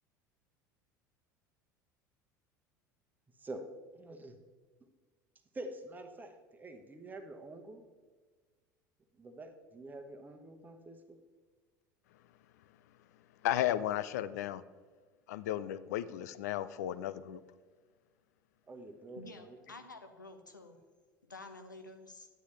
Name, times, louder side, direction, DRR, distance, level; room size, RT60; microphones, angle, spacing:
voice 1, 3.4-3.7 3.9-4.4 5.5-7.8 9.1-11.2 18.7-19.6, right 1 dB, 15° right, 6 dB, 1.1 m, -47 dB
voice 2, 13.4-14.6 15.3-17.4, left 12 dB, 60° left, 16 dB, 0.4 m, -34 dB
voice 3, 19.2-20.8 21.3-22.3, left 2 dB, 80° left, 7 dB, 0.9 m, -50 dB
11.5 x 9.6 x 3.2 m, 1.4 s
figure-of-eight pair, 70°, 10 cm